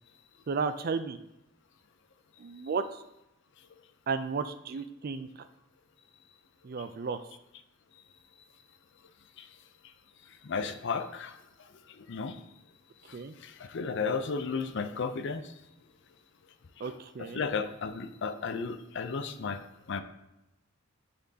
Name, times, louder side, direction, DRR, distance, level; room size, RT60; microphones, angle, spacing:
voice 1, 0.5-1.2 2.4-2.8 4.1-5.3 6.6-7.2 13.1-13.3 16.8-17.4, right 5 dB, 45° right, 10 dB, 0.4 m, -33 dB
voice 2, 10.4-11.4 12.1-12.4 13.1-13.2 13.4-15.4 16.8-16.9 17.2-19.6 19.9-20.0, left 5 dB, 55° left, 10 dB, 0.5 m, -33 dB
11.0 x 4.3 x 2.8 m, 0.88 s
head